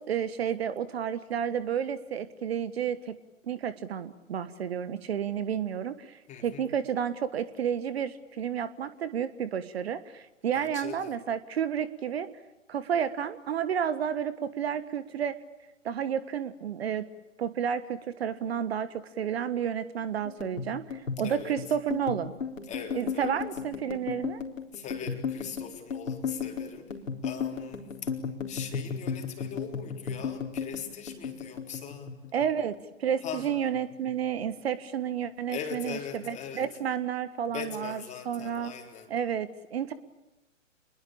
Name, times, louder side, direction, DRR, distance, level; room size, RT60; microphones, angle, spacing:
voice 1, 0.1-3.2 3.5-12.3 12.7-15.3 15.8-17.1 17.4-22.3 22.9-24.4 32.3-38.7 39.1-39.9, right 8 dB, 50° right, 14 dB, 1.5 m, -31 dB
voice 2, 6.3-6.7 10.5-11.2 21.2-21.5 22.6-23.4 24.7-26.9 27.2-28.1 28.5-32.2 33.2-33.5 35.5-36.6 37.5-39.1, left 7 dB, 15° left, 4 dB, 3.9 m, -40 dB
sound 1, 20.2-32.8 33.1-34.1 34.4-34.8 35.1-35.8, left 6 dB, 75° left, 4.1 m, -35 dB
28.5 x 22.0 x 8.7 m, 1.0 s
figure-of-eight pair, 120°, 40 cm